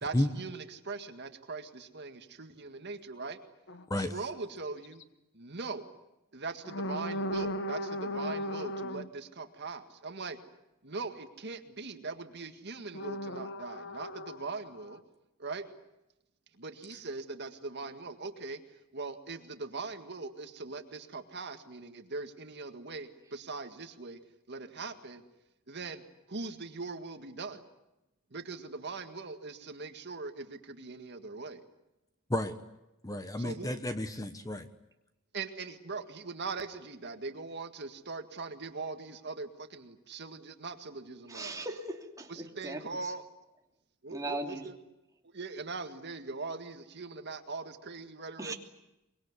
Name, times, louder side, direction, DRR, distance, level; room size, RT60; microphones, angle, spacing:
voice 1, 0.0-3.4 4.0-5.0 5.3-5.8 6.3-10.4 10.8-15.0 15.4-15.7 16.6-18.6 18.9-24.2 24.5-25.2 25.7-26.0 26.3-27.6 28.3-31.6 33.4-33.7 35.3-41.7 42.3-43.2 44.0-44.8 45.3-48.5, right 3 dB, 55° right, 7 dB, 1.9 m, -41 dB
sound 1, 3.7-3.8 4.8-5.0 6.6-9.1 12.9-15.0, equal, 60° left, 1.3 m, -36 dB
voice 2, 33.0-34.7, left 1 dB, 15° left, 9 dB, 1.1 m, -31 dB
voice 3, 41.3-42.8 44.1-44.6 48.4-48.5, right 2 dB, 15° right, 2 dB, 2.9 m, -38 dB
24.5 x 22.5 x 9.6 m, 0.91 s
head